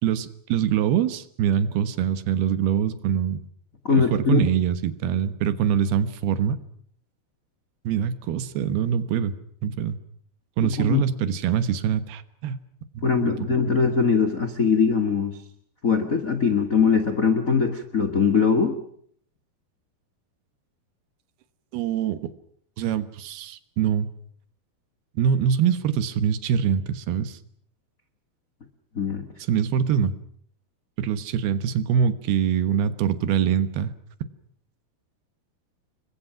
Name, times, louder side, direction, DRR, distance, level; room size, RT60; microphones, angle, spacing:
voice 1, 0.0-3.4 3.9-6.6 7.8-9.3 9.6-10.0 10.6-12.6 12.9-13.4 13.7-13.8 21.7-22.3 22.8-24.1 25.2-27.4 29.5-30.1 31.0-33.9, right 8 dB, 75° right, 12 dB, 3.2 m, -24 dB
voice 2, 3.8-4.4 10.6-11.0 13.0-15.4 15.8-18.8 28.9-29.3, left 5 dB, 60° left, 9 dB, 0.8 m, -21 dB
29.5 x 23.0 x 6.0 m, 0.62 s
omnidirectional pair, 4.6 m